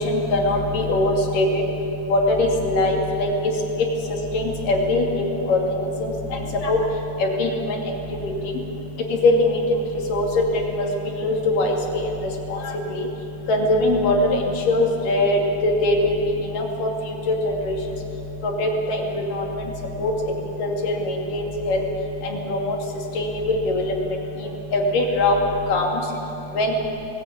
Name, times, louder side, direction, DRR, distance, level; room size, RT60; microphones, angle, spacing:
voice 1, 0.0-1.5 2.1-3.3 4.3-5.6 6.6-6.8 7.2-7.5 8.2-8.3 9.2-9.5 10.1-10.3 10.8-10.9 11.2-11.8 13.5-14.2 14.7-16.1 16.6-16.9 17.3-17.8 18.4-19.0 19.3-19.4 20.0-20.1 20.6-21.4 21.7-21.8 22.5-22.6 23.2-23.9 24.7-25.4 25.7-25.9 26.6-26.9, left 2 dB, 55° left, 0 dB, 3.7 m, -21 dB
20.0 x 19.0 x 8.7 m, 2.8 s
omnidirectional pair, 4.8 m